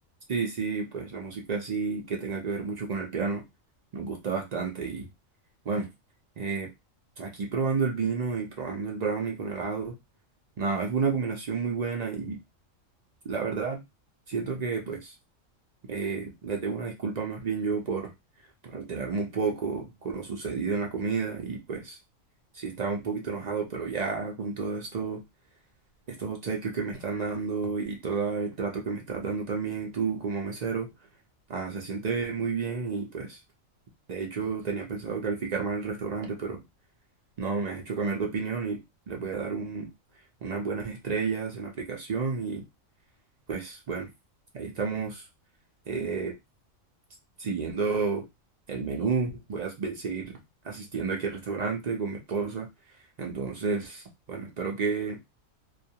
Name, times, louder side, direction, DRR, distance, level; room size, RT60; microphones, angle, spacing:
voice 1, 0.3-3.5 3.9-5.1 5.6-5.9 6.4-6.7 7.2-10.0 10.6-12.4 13.2-13.8 14.3-15.1 15.9-18.1 18.7-22.0 22.5-25.2 26.1-30.9 31.5-33.4 34.1-36.6 37.4-38.8 39.1-39.9 40.4-42.7 43.5-44.1 44.5-45.3 45.9-46.4 47.4-48.3 48.7-52.7 53.2-55.2, right 5 dB, 65° right, 1 dB, 0.4 m, -31 dB
2.3 x 2.2 x 2.8 m, 0.21 s
omnidirectional pair, 1.4 m